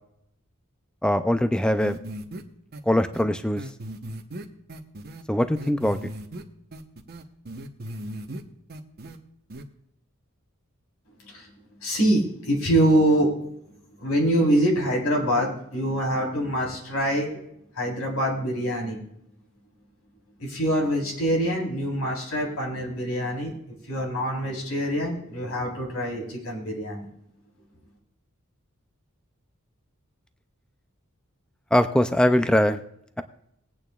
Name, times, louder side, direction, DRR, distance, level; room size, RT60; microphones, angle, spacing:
voice 1, 1.0-2.0 2.9-3.6 5.3-6.0 31.7-32.8, left 1 dB, 5° left, 10 dB, 0.4 m, -21 dB
sound 1, 1.8-2.4 2.7-2.8 3.1-3.2 3.6-5.2 5.6-6.4 6.7-8.4 8.7-9.2 9.5-9.6, right 1 dB, 50° right, 0.9 m, -37 dB
voice 2, 11.8-13.3 14.0-17.3 17.8-19.0 20.4-23.5 23.9-27.0, right 1 dB, 80° left, -1 dB, 3.8 m, -24 dB
20.5 x 8.8 x 2.4 m, 0.77 s
head